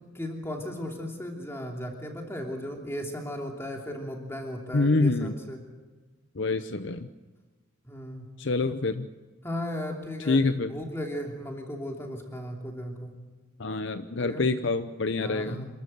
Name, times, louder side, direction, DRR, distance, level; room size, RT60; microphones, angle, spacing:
voice 1, 0.0-5.6 7.8-8.3 9.4-10.4 10.7-13.1 14.2-14.4 15.2-15.7, equal, 10° left, 1 dB, 3.0 m, -36 dB
voice 2, 4.7-5.3 6.4-7.1 8.4-9.1 10.3-10.7 13.6-15.6, left 3 dB, 55° left, 10 dB, 0.7 m, -26 dB
27.0 x 13.5 x 7.9 m, 1.3 s
head